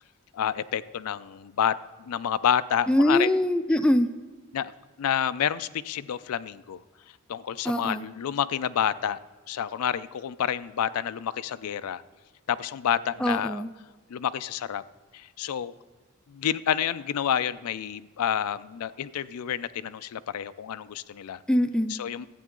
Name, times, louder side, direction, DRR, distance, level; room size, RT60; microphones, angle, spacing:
voice 1, 0.3-1.7 2.0-3.3 4.5-4.7 5.0-6.8 7.3-9.2 9.5-12.0 12.5-13.6 14.1-14.8 15.1-15.7 16.3-21.4 21.9-22.3, left 9 dB, 85° left, 15 dB, 0.4 m, -29 dB
voice 2, 2.9-4.1 7.6-8.1 13.2-13.7 21.5-21.9, left 1 dB, 5° left, 9 dB, 0.4 m, -23 dB
12.5 x 8.6 x 3.7 m, 1.3 s
head